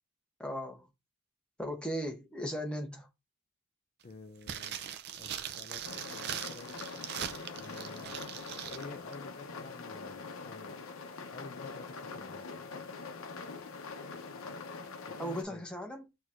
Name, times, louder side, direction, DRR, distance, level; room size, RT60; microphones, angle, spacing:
voice 1, 0.4-0.9 1.6-3.1 15.2-16.0, equal, 5° left, 0.7 m, -37 dB
voice 2, 4.0-5.8 6.1-6.8 7.6-8.2 8.7-10.8 11.3-12.7 15.1-15.7, left 3 dB, 35° left, 0.3 m, -50 dB
sound 1, 4.4-8.9 9.1-9.2, right 9 dB, 50° right, 0.4 m, -40 dB
sound 2, 5.8-15.4, left 4 dB, 70° left, 0.7 m, -44 dB
6.2 x 2.8 x 2.4 m
head